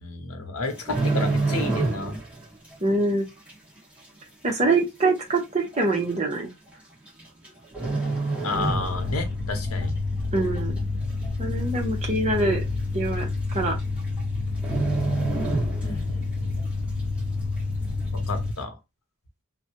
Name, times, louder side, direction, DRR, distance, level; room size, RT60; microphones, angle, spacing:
voice 1, 0.0-2.2 8.4-9.9 15.8-16.6 18.1-18.8, left 3 dB, 75° left, 0.8 m, -31 dB
sound 1, 0.6-2.4 2.6-2.9 3.5-3.6 4.5-4.6 4.8-4.9 5.7-6.0 7.1-7.5 7.7-9.3 9.6-9.9 10.4-10.9 11.2-11.3 11.6-11.7 12.1-12.2 13.1-13.2 13.5-13.8 14.1-14.2 14.6-16.2 16.6-16.7, right 3 dB, 5° right, 1.3 m, -27 dB
voice 2, 2.8-3.3 4.4-6.5 10.3-10.7 11.4-12.6 12.9-13.7, right 2 dB, 30° right, 0.8 m, -24 dB
sound 2, 8.5-18.5, left 3 dB, 45° left, 0.4 m, -29 dB
3.1 x 2.1 x 3.0 m
head